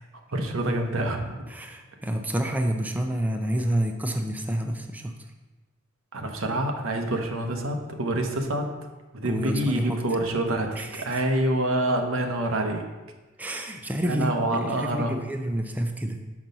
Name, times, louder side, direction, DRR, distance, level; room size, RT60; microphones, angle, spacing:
voice 1, 0.3-1.4 6.1-8.7 9.1-12.9 14.0-15.2, right 1 dB, 85° right, 4 dB, 0.9 m, -27 dB
voice 2, 1.5-5.2 9.2-10.0 10.8-11.2 13.4-16.2, right 1 dB, 10° right, 4 dB, 0.4 m, -29 dB
6.1 x 5.1 x 5.4 m, 1.2 s
head